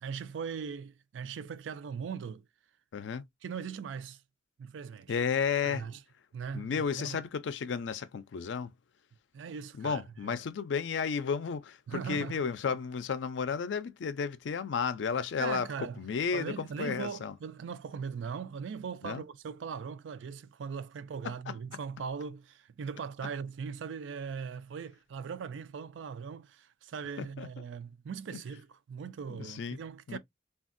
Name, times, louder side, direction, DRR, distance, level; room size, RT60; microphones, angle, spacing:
voice 1, 0.0-2.4 3.4-4.2 4.6-5.1 5.6-6.0 6.3-7.2 9.3-10.4 11.9-12.5 15.4-16.0 16.3-30.2, right 6 dB, 85° right, 0.4 m, -40 dB
voice 2, 2.9-3.2 5.1-5.8 6.5-8.7 9.8-15.7 16.0-17.3 19.0-19.2 21.2-21.5 27.2-27.5 28.3-28.4 29.3-29.8 30.1-30.2, left 6 dB, 75° left, 0.4 m, -33 dB
3.5 x 2.3 x 2.4 m
head